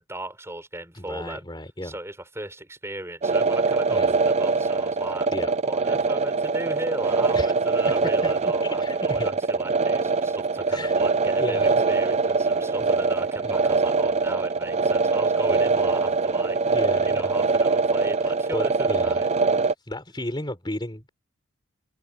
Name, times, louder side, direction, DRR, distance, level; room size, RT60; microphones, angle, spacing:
voice 1, 0.0-1.5 1.8-5.3 5.6-16.8 17.0-19.3, right 1 dB, 10° right, 5.6 m, -37 dB
voice 2, 0.9-2.0 3.9-4.1 5.3-5.5 7.3-7.5 8.2-9.4 10.7-11.0 11.3-11.7 13.4-13.6 15.5-15.6 16.6-17.3 18.5-19.2 19.6-21.1, left 1 dB, 20° left, 4.2 m, -34 dB
sound 1, 3.2-19.7, right 4 dB, 30° right, 0.3 m, -23 dB
head